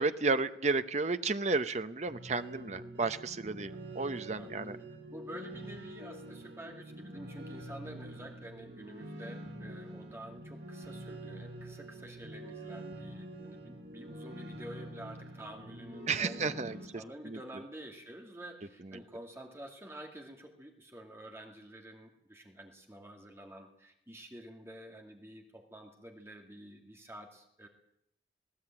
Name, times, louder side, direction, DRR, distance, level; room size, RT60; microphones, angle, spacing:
voice 1, 0.0-4.8 16.1-17.4, right 3 dB, 40° right, 11 dB, 0.9 m, -32 dB
sound 1, 2.1-16.9, right 1 dB, 80° right, 4.4 m, -46 dB
voice 2, 4.4-4.7 5.1-27.7, right 1 dB, 15° right, 2 dB, 2.3 m, -49 dB
19.5 x 18.0 x 8.9 m, 0.75 s
head